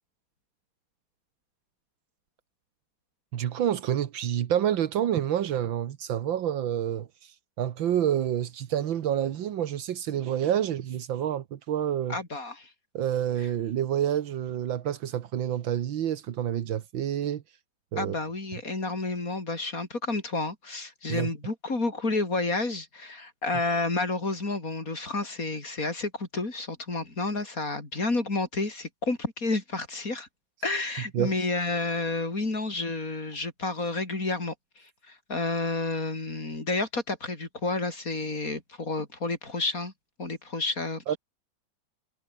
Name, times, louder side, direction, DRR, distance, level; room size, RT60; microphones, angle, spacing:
voice 1, 3.3-7.1 7.6-12.2 12.9-17.4 17.9-18.2 21.1-21.3 31.1-31.3 41.1-41.2, right 10 dB, 80° right, 1.9 m, -28 dB
voice 2, 12.1-12.7 13.4-13.5 18.0-30.3 30.6-39.9 40.2-41.2, left 3 dB, 45° left, 4.8 m, -30 dB
omnidirectional pair, 2.1 m